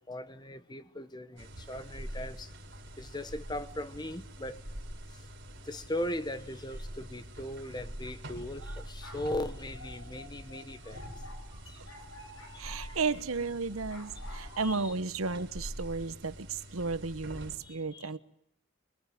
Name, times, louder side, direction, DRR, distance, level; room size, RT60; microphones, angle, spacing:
voice 1, 0.1-2.5 3.0-4.6 5.1-5.2 5.6-11.0 11.7-11.8 12.2-12.9 14.6-14.9 17.6-18.2, left 1 dB, 20° left, 1.1 m, -39 dB
sound 1, 1.4-17.6, equal, 55° right, 4.8 m, -45 dB
sound 2, 8.7-13.2 13.9-14.7, left 2 dB, 85° left, 5.3 m, -50 dB
voice 2, 12.6-18.2, right 4 dB, 90° right, 1.1 m, -34 dB
24.5 x 23.0 x 9.2 m
head